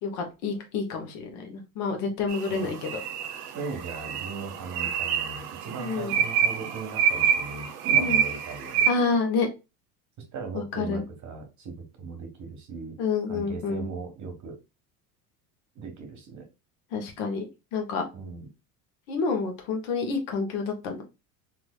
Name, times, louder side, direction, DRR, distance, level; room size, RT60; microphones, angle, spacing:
voice 1, 0.0-2.9 5.8-6.2 8.0-8.2 8.9-9.5 10.5-11.0 13.0-13.9 16.9-17.5 17.7-18.1 19.1-21.0, left 4 dB, 65° left, 3 dB, 1.1 m, -28 dB
sound 1, 2.3-8.9, right 8 dB, 80° right, 0.7 m, -27 dB
voice 2, 3.4-8.9 10.3-13.0 13.3-14.6 15.7-16.5 18.1-18.5, right 4 dB, 40° right, 4 dB, 1.3 m, -38 dB
3.2 x 2.9 x 2.2 m, 0.27 s
hypercardioid pair, 85°, 46 cm